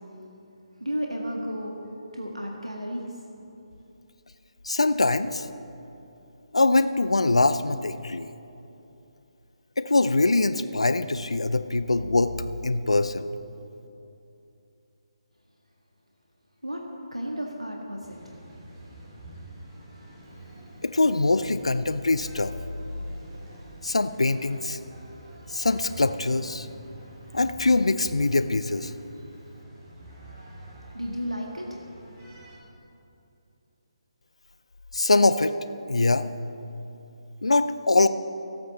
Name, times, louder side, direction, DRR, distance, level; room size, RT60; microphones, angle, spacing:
voice 1, 0.8-1.8 2.1-3.0 16.6-16.8 17.1-18.2 30.9-31.8, equal, 90° right, 0 dB, 1.6 m, -32 dB
voice 2, 4.7-5.5 6.5-8.3 9.8-12.3 12.6-13.3 20.8-22.5 23.8-24.8 25.5-26.7 27.3-28.9 34.9-35.5 35.9-36.2 37.4-38.1, left 2 dB, 70° left, 12 dB, 0.6 m, -23 dB
sound 1, 18.0-32.6, right 1 dB, 25° right, 2.8 m, -46 dB
26.0 x 8.7 x 4.1 m, 2.8 s
figure-of-eight pair, 145°, 3 cm